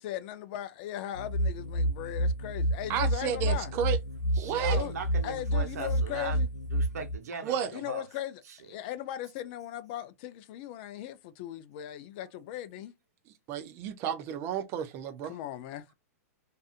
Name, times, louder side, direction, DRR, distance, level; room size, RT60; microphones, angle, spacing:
voice 1, 0.0-3.7 4.5-4.9 5.2-6.5 7.7-12.9 15.2-15.9, left 12 dB, 40° left, 0.4 m, -38 dB
sound 1, 1.1-7.2, right 1 dB, 80° left, 0.7 m, -29 dB
voice 2, 2.9-4.0 4.4-4.8 7.4-7.7 13.5-15.3, right 9 dB, 30° right, 0.5 m, -32 dB
voice 3, 4.3-6.4 6.7-8.0 8.5-8.6, right 5 dB, 80° right, 0.9 m, -39 dB
2.6 x 2.4 x 2.4 m
hypercardioid pair, 150°, 9 cm